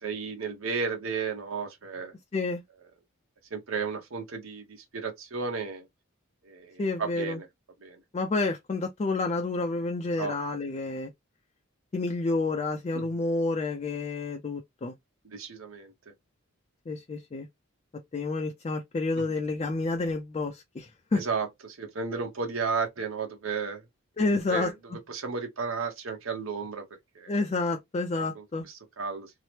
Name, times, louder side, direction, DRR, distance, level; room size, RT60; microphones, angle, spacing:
voice 1, 0.0-2.1 3.5-5.9 6.4-7.5 7.8-8.0 10.2-10.4 12.9-13.2 15.2-15.9 19.2-19.3 21.1-23.8 24.5-24.7 25.1-26.9 27.1-27.3 28.2-29.3, right 5 dB, 75° right, 0.8 m, -33 dB
voice 2, 6.8-7.4 8.1-11.1 11.9-14.9 16.9-17.5 18.1-21.2 24.2-24.7 27.3-28.7, left 3 dB, 30° left, 0.3 m, -29 dB
2.8 x 2.0 x 3.1 m
head